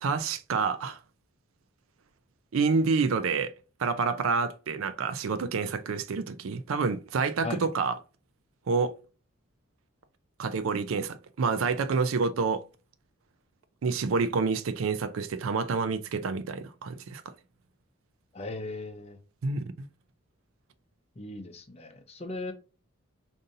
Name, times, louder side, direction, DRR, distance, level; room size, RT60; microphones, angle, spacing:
voice 1, 0.0-1.0 2.5-3.5 3.8-8.0 8.7-8.9 10.4-12.6 13.8-17.2 19.4-19.9, right 4 dB, 80° right, 0.4 m, -28 dB
voice 2, 18.3-19.2 21.2-22.5, left 2 dB, 30° left, 0.6 m, -37 dB
5.1 x 2.7 x 2.6 m
head